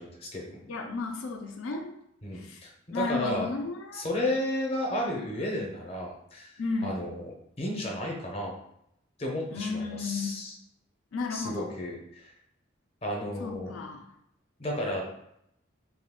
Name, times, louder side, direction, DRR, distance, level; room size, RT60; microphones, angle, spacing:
voice 1, 0.0-0.6 2.2-3.5 3.9-7.3 7.6-8.5 9.2-10.5 11.3-12.3 13.0-13.7 14.6-15.1, left 1 dB, 30° left, -1 dB, 0.6 m, -33 dB
voice 2, 0.7-1.9 2.3-2.6 2.9-4.0 6.6-7.1 9.5-10.4 11.1-11.7 13.4-14.1, left 4 dB, 85° left, 3 dB, 0.4 m, -33 dB
2.7 x 2.3 x 3.5 m, 0.76 s
head